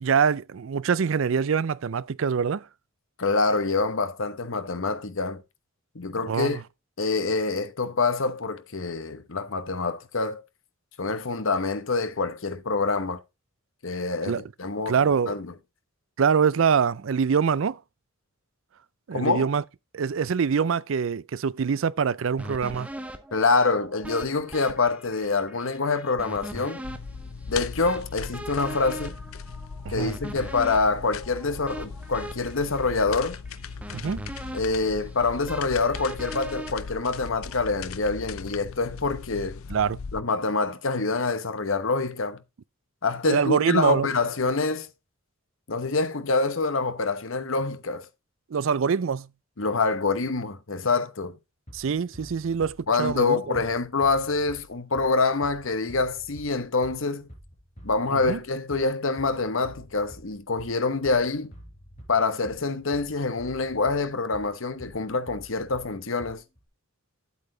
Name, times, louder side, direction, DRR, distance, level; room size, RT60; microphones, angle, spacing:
voice 1, 0.0-2.6 6.3-6.6 14.2-14.4 14.9-15.3 16.2-17.8 19.1-19.6 19.9-22.9 29.8-30.1 33.9-34.2 39.7-40.0 43.3-44.1 48.5-49.3 51.7-53.6 58.3-58.4, right 6 dB, 70° right, 0.4 m, -24 dB
voice 2, 3.2-5.4 5.9-6.6 7.0-10.4 11.0-13.2 13.8-15.0 15.3-15.5 19.1-19.5 23.3-26.8 27.5-29.1 29.9-33.4 34.5-39.6 40.1-42.4 43.0-44.9 45.7-48.1 49.6-51.4 52.9-57.3 57.8-61.5 62.1-66.4, left 3 dB, 70° left, 1.0 m, -26 dB
sound 1, 22.4-37.6, right 1 dB, 5° right, 0.9 m, -41 dB
sound 2, 26.8-40.2, left 5 dB, 90° left, 0.6 m, -38 dB
Bass drum, 51.7-66.7, equal, 35° left, 5.2 m, -48 dB
8.8 x 8.4 x 3.9 m
head